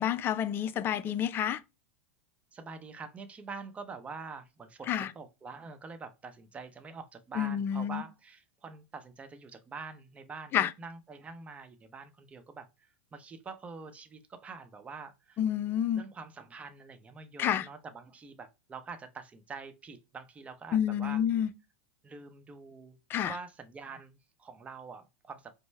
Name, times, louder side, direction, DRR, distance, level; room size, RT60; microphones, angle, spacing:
voice 1, 0.0-1.6 4.9-5.1 7.4-8.0 10.5-10.7 15.4-16.0 17.4-17.7 20.7-21.5 23.1-23.3, left 10 dB, 35° left, 0.4 m, -29 dB
voice 2, 2.5-12.7 13.1-15.4 15.9-21.2 22.0-23.0 23.2-25.5, right 4 dB, 20° right, 0.7 m, -45 dB
5.1 x 2.1 x 3.2 m
hypercardioid pair, 100°, 7 cm